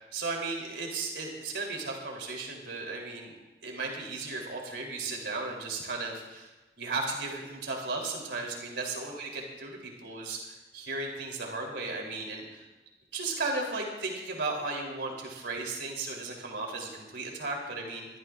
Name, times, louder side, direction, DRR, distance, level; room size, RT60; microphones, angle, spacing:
voice 1, 0.0-12.6 13.1-18.1, right 3 dB, 80° right, 0 dB, 3.5 m, -35 dB
24.0 x 14.0 x 2.5 m, 1.1 s
head